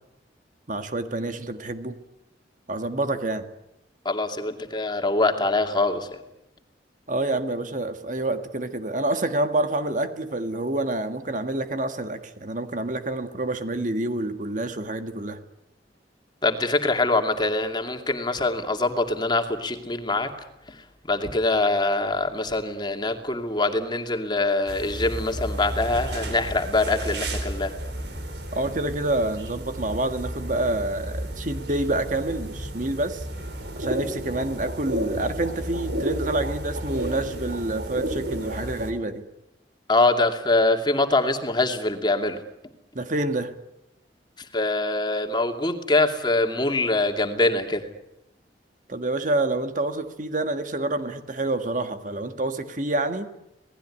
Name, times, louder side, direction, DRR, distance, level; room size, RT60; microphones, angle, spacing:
voice 1, 0.7-2.0 2.7-3.5 7.1-15.4 28.5-33.3 33.8-39.3 43.0-43.5 48.9-53.3, right 2 dB, 45° right, 8 dB, 1.7 m, -27 dB
voice 2, 4.0-6.2 16.4-20.3 20.7-20.8 21.1-27.7 39.9-42.4 44.4-47.9, left 2 dB, 25° left, 5 dB, 2.5 m, -24 dB
sound 1, 24.7-38.9, right 1 dB, 70° right, 4.4 m, -32 dB
27.0 x 19.0 x 10.0 m, 0.88 s
head